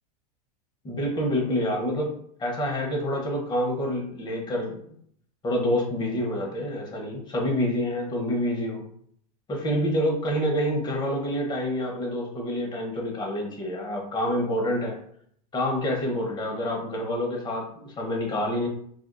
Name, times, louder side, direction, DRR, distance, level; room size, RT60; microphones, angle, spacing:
voice 1, 0.8-4.8 5.4-8.8 9.5-15.0 15.5-18.7, equal, 20° left, 0 dB, 0.8 m, -27 dB
2.6 x 2.3 x 2.2 m, 0.62 s
supercardioid pair, 115°, 20 cm